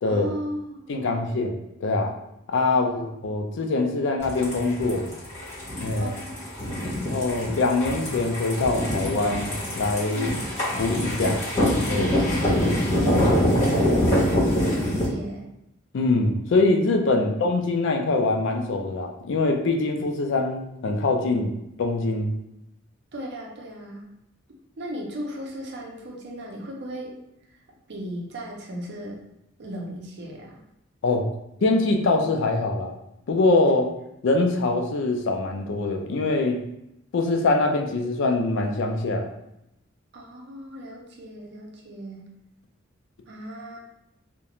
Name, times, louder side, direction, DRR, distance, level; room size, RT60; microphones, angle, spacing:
voice 1, 0.0-1.4 2.7-3.0 6.0-7.0 10.1-10.5 12.9-14.0 14.3-15.5 17.1-17.3 23.1-24.0 24.8-27.2 27.5-27.6 27.9-29.2 29.6-30.6 40.1-42.2 43.3-43.8, equal, 55° right, -1 dB, 0.6 m, -37 dB
voice 2, 0.9-2.1 2.5-5.1 5.8-6.1 7.0-10.3 10.8-11.4 11.9-12.2 15.9-22.3 31.0-31.3 31.6-32.9 33.3-33.9 34.2-36.6 37.1-39.3, left 3 dB, 60° left, 3 dB, 0.4 m, -23 dB
sound 1, 4.2-15.1, left 1 dB, 40° left, 1.1 m, -24 dB
2.4 x 2.1 x 2.9 m, 0.84 s
head